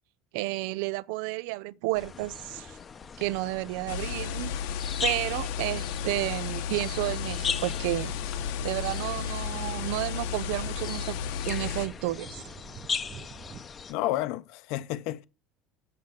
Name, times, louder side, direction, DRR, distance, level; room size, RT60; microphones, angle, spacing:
voice 1, 0.3-2.8 3.2-4.5 5.0-8.2 8.6-11.2 11.5-12.4, right 19 dB, 65° right, 0.4 m, -31 dB
sound 1, 1.9-13.9, left 6 dB, 20° left, 0.7 m, -39 dB
sound 2, 3.9-11.9, left 8 dB, 80° left, 1.4 m, -33 dB
sound 3, 5.0-13.6, right 7 dB, 30° right, 0.7 m, -50 dB
voice 2, 13.9-15.2, left 15 dB, 55° left, 0.8 m, -31 dB
8.2 x 6.9 x 6.5 m
cardioid pair, 170°, 0 cm